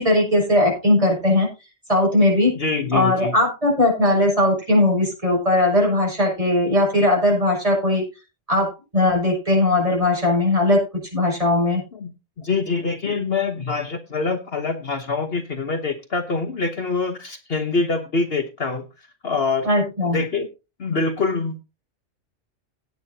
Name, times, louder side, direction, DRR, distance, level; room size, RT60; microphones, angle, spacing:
voice 1, 0.0-1.5 1.9-2.5 2.9-8.0 8.5-10.8 11.1-11.8 19.6-20.3, left 1 dB, 30° right, -2 dB, 7.1 m, -19 dB
voice 2, 2.6-3.3 11.9-12.1 12.4-18.9 19.2-19.7 20.0-20.5 20.8-21.6, left 4 dB, 55° left, 7 dB, 1.3 m, -25 dB
16.5 x 9.6 x 2.8 m, 0.28 s
omnidirectional pair, 1.3 m